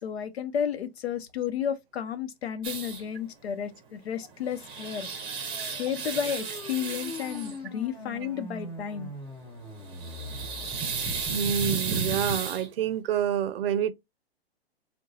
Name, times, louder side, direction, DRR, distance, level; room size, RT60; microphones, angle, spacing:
voice 1, 0.0-5.1 5.6-9.1, left 8 dB, 75° left, 0.8 m, -32 dB
sound 1, 2.6-3.0 4.3-7.6 9.8-12.7, right 5 dB, 15° right, 0.8 m, -33 dB
sound 2, 4.7-11.6, left 1 dB, 35° left, 1.3 m, -43 dB
voice 2, 11.3-13.9, right 9 dB, 65° right, 0.5 m, -27 dB
4.7 x 2.2 x 2.7 m
hypercardioid pair, 140°, 32 cm